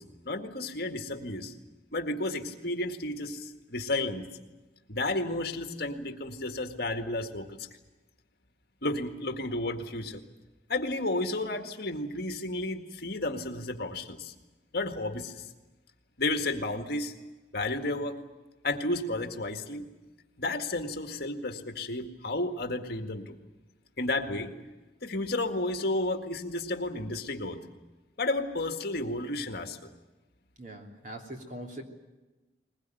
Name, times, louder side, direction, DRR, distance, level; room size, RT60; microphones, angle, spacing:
voice 1, 0.0-1.5 1.9-4.3 4.9-7.7 8.8-10.2 10.7-14.3 14.7-15.4 16.2-17.1 17.5-18.2 18.6-19.8 20.4-23.4 24.0-24.5 25.0-27.6 28.2-29.9, left 2 dB, 55° left, 6 dB, 1.9 m, -32 dB
voice 2, 30.6-31.8, right 1 dB, 45° right, 2 dB, 3.1 m, -42 dB
21.0 x 21.0 x 9.2 m, 1.1 s
head